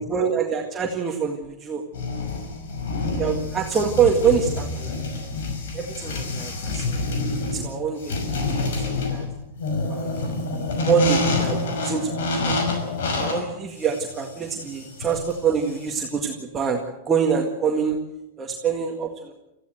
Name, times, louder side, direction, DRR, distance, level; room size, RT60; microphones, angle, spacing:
voice 1, 0.0-1.8 3.2-4.9 5.7-7.0 7.5-8.3 8.6-9.3 9.9-10.2 10.5-12.5 13.2-18.0 18.4-19.3, right 6 dB, 20° right, 1 dB, 1.9 m, -25 dB
sound 1, 1.9-16.0, left 2 dB, 80° left, 5.9 m, -27 dB
24.0 x 15.0 x 7.8 m, 0.91 s
supercardioid pair, 155°, 0 cm